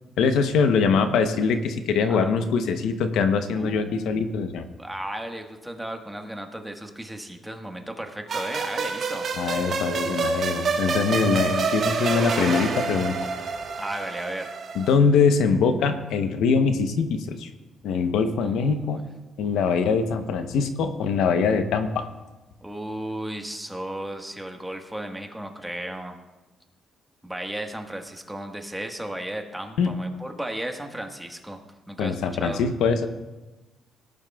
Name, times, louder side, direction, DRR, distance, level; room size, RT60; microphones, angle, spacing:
voice 1, 0.2-4.6 9.4-13.3 14.7-17.5 17.8-19.0 19.4-22.0 29.8-29.9 32.0-33.1, left 5 dB, 85° left, 8 dB, 0.8 m, -23 dB
voice 2, 3.6-4.1 4.8-9.3 13.7-14.5 18.4-19.0 22.6-26.2 27.2-32.6, right 1 dB, 5° right, 3 dB, 1.4 m, -35 dB
sound 1, 8.3-14.9, right 5 dB, 55° right, 1.3 m, -27 dB
18.0 x 11.0 x 2.3 m, 1.1 s
cardioid pair, 90°, 0 cm